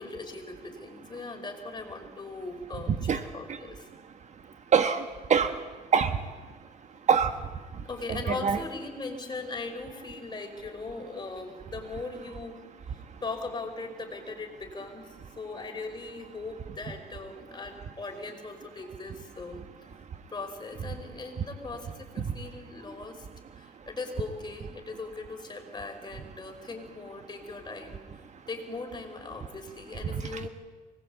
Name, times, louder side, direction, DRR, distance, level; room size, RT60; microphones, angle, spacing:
voice 1, 0.0-3.9 7.8-12.6 12.9-19.6 20.3-23.3 23.6-28.0 28.5-30.5, left 3 dB, 25° left, 4 dB, 5.2 m, -39 dB
voice 2, 3.9-8.6 13.0-13.2 20.1-20.2 22.2-22.3 23.6-23.9 28.3-28.4 30.1-30.5, right 6 dB, 45° right, 9 dB, 1.3 m, -28 dB
24.5 x 20.0 x 8.6 m, 1.4 s
cardioid pair, 110°, 17 cm